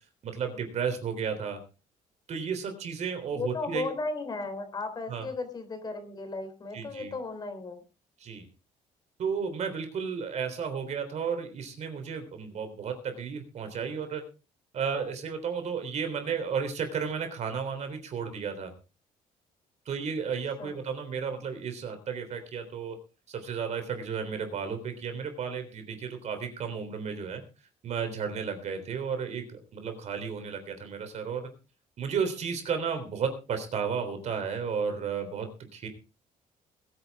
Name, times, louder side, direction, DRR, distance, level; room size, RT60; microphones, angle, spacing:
voice 1, 0.2-1.6 2.3-3.9 5.1-5.3 6.7-7.1 8.2-8.4 9.2-14.2 14.7-18.7 19.9-23.0 23.3-27.4 27.8-29.4 29.7-31.5 32.0-35.9, right 6 dB, 55° right, 8 dB, 3.5 m, -33 dB
voice 2, 3.3-7.8 20.6-20.8, left 3 dB, 30° left, 8 dB, 3.3 m, -35 dB
21.5 x 9.5 x 3.6 m, 0.33 s
cardioid pair, 145°, 14 cm